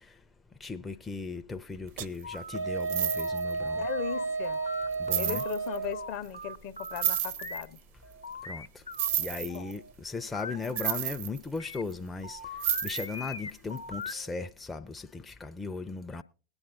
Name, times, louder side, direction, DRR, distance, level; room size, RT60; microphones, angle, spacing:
voice 1, 0.6-3.9 5.0-5.4 8.5-8.7 9.2-12.4 12.8-16.2, left 4 dB, 10° left, 0.4 m, -37 dB
sound 1, 2.0-2.2 2.8-3.5 4.3-4.4 4.9-5.8 6.8-7.6 8.9-9.8 10.6-11.9 12.6-13.3 13.8-13.9, right 11 dB, 55° right, 0.5 m, -31 dB
sound 2, 2.2-2.6 3.0-5.5 5.9-7.6 8.0-11.0 11.6-14.3, left 3 dB, 85° left, 0.8 m, -41 dB
Wind instrument woodwind instrument, 2.5-6.1, right 4 dB, 85° right, 1.2 m, -32 dB
voice 2, 3.8-4.6 5.2-7.8 9.2-9.6, left 10 dB, 50° left, 0.6 m, -38 dB
21.0 x 8.7 x 2.4 m
figure-of-eight pair, 90°, 0 cm